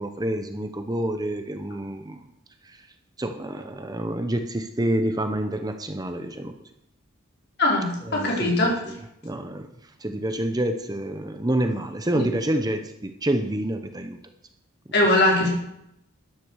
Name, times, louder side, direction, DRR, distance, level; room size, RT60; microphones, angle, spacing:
voice 1, 0.0-2.2 2.6-2.9 3.2-6.5 8.0-9.7 10.0-14.2, right 1 dB, 20° right, 7 dB, 0.9 m, -28 dB
voice 2, 7.6-8.8 12.1-12.2 14.9-15.5, left 1 dB, 50° left, -1 dB, 4.4 m, -21 dB
12.5 x 10.0 x 6.4 m, 0.78 s
head